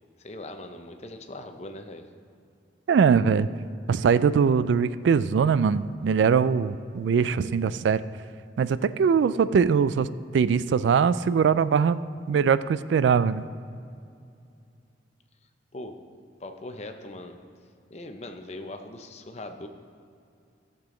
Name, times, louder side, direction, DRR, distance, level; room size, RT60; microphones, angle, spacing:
voice 1, 0.2-2.1 15.7-16.0 16.4-17.4 17.9-19.7, left 1 dB, 35° left, 6 dB, 0.7 m, -40 dB
voice 2, 2.9-3.5 3.9-8.0 8.6-10.1 10.3-12.0 12.3-13.4, right 6 dB, 75° right, 16 dB, 0.3 m, -22 dB
14.5 x 6.9 x 3.8 m, 2.4 s
head